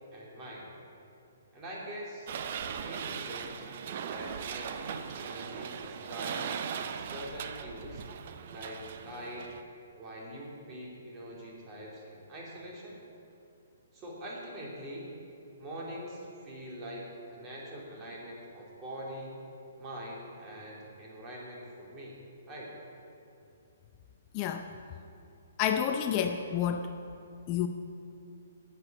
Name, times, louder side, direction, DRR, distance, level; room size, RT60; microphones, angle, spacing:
voice 1, 0.1-0.7 1.5-8.0 8.5-9.5 10.0-13.0 13.9-15.1 15.6-19.4 19.8-22.2 22.5-22.7, equal, 25° right, -4 dB, 3.0 m, -43 dB
sound 1, 2.3-9.6, right 7 dB, 50° right, 0.6 m, -39 dB
voice 2, 24.3-24.7 25.6-26.9 27.5-27.7, left 9 dB, 35° left, 7 dB, 0.5 m, -29 dB
9.7 x 8.3 x 6.7 m, 2.7 s
figure-of-eight pair, 125°, 0 cm